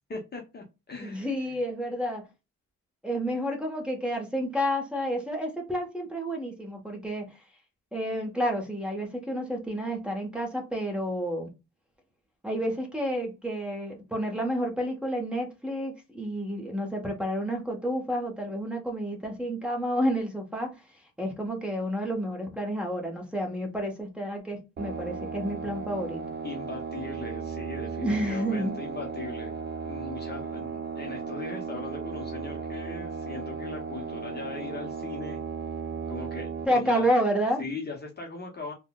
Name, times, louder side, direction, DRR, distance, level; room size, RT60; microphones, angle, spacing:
voice 1, 0.1-1.6 26.4-29.6 29.8-35.4 36.1-37.1 37.6-38.7, left 4 dB, 35° left, 0.7 m, -39 dB
voice 2, 1.0-2.2 3.0-7.4 7.9-11.5 12.4-20.8 21.2-26.2 28.0-28.7 36.7-37.7, equal, 5° right, 0.9 m, -30 dB
sound 1, 24.8-36.7, right 5 dB, 35° right, 0.5 m, -35 dB
3.6 x 2.2 x 2.2 m
cardioid pair, 90°, 30 cm